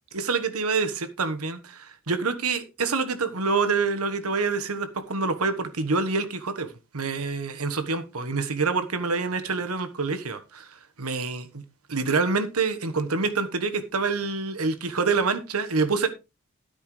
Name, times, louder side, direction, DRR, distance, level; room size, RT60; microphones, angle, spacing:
voice 1, 0.1-6.7 6.9-11.6 11.9-16.1, right 4 dB, 85° right, 10 dB, 1.3 m, -26 dB
12.5 x 9.7 x 3.2 m, 0.27 s
head